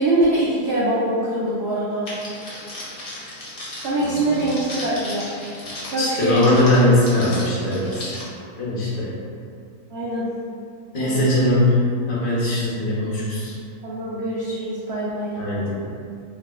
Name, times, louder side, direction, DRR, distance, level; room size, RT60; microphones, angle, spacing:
voice 1, 0.0-2.1 3.8-5.3 5.9-6.6 9.9-10.3 11.0-11.3 13.8-15.3, right 1 dB, 90° right, -7 dB, 0.5 m, -23 dB
Crackle, 2.1-8.2, left 1 dB, 40° left, 0.9 m, -35 dB
voice 2, 4.0-4.4 6.0-8.1 8.6-9.1 10.9-11.7 12.1-13.5 15.4-15.7, left 1 dB, 70° left, -8 dB, 1.4 m, -20 dB
4.0 x 2.3 x 2.2 m, 2.4 s
omnidirectional pair, 1.7 m